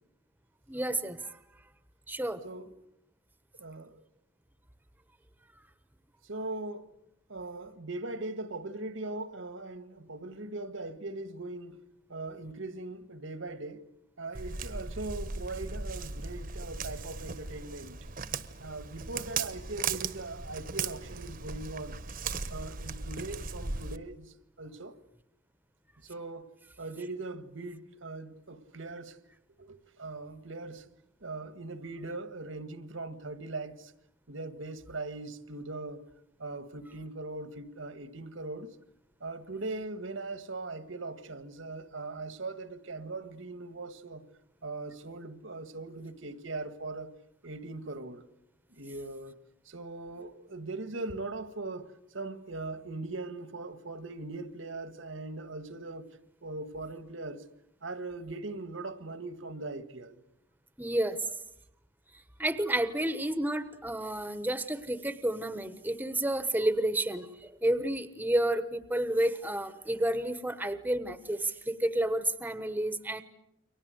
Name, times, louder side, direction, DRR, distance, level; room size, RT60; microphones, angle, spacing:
voice 1, 0.7-1.6 2.1-2.4 60.8-61.2 62.1-73.2, right 1 dB, 10° right, 1.2 m, -30 dB
voice 2, 3.6-4.0 6.2-6.9 7.3-11.8 12.1-13.8 14.2-18.0 18.6-22.0 22.5-25.0 26.0-26.4 26.8-29.2 29.6-30.8 31.2-33.9 34.3-36.0 36.4-38.8 39.2-44.2 44.6-47.1 47.4-48.2 48.8-49.4 49.7-56.1 56.4-57.4 57.8-60.2, right 2 dB, 70° right, 1.8 m, -40 dB
Walk footsteps, 14.3-24.0, right 5 dB, 45° right, 1.3 m, -37 dB
29.5 x 24.5 x 8.0 m
head